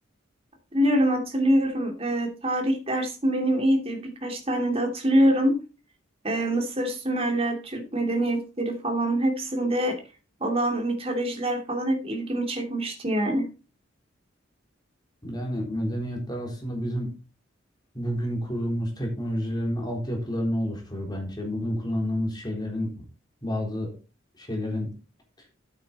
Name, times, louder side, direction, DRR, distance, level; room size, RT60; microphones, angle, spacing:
voice 1, 0.7-5.5 6.2-10.0 10.4-13.4, right 1 dB, 30° right, 3 dB, 2.7 m, -25 dB
voice 2, 15.2-17.1 17.9-23.1 23.4-23.9 24.4-24.9, equal, 20° left, 0 dB, 3.8 m, -29 dB
8.9 x 8.8 x 4.3 m, 0.31 s
head